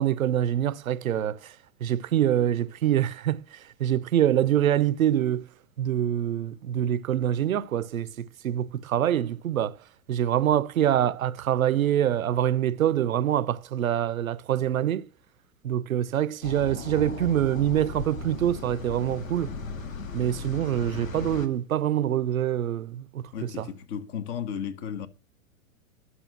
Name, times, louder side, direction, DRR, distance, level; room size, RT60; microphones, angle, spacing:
voice 1, 0.0-1.5 1.8-3.4 3.8-5.4 5.8-9.8 10.1-15.1 15.6-19.5 20.1-23.7, right 11 dB, 70° right, 0.8 m, -25 dB
sound 1, 16.4-21.5, left 4 dB, 70° left, 1.8 m, -37 dB
voice 2, 23.3-25.1, left 8 dB, 40° left, 1.7 m, -34 dB
11.0 x 6.8 x 7.3 m
figure-of-eight pair, 100°, 43 cm